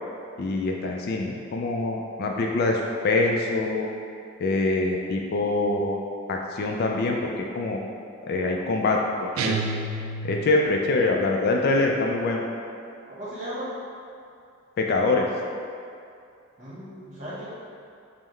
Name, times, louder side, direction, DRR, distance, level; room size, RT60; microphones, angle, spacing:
voice 1, 0.4-3.9 4.4-6.0 6.3-7.8 8.3-9.6 10.2-12.4 14.8-15.3, left 2 dB, 50° left, 1 dB, 0.3 m, -24 dB
sound 1, 9.4-10.7, right 3 dB, 70° right, 0.3 m, -29 dB
voice 2, 13.1-13.7 16.6-17.5, equal, 35° right, -9 dB, 1.2 m, -36 dB
5.5 x 2.1 x 3.1 m, 2.4 s
head